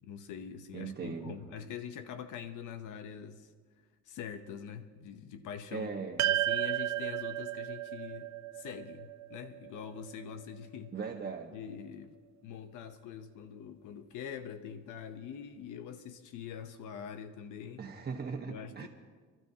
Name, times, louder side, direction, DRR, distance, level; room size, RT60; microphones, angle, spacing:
voice 1, 0.0-3.5 4.0-5.9 6.3-10.9 11.5-17.8 18.5-18.9, left 8 dB, 85° left, 9 dB, 0.8 m, -44 dB
voice 2, 0.7-1.4 5.7-6.3 10.9-11.5 17.8-18.9, right 5 dB, 35° right, 0 dB, 1.4 m, -39 dB
sound 1, 6.2-10.7, right 13 dB, 65° right, 0.5 m, -34 dB
29.0 x 12.5 x 2.8 m, 1.5 s
cardioid pair, 90°, 30 cm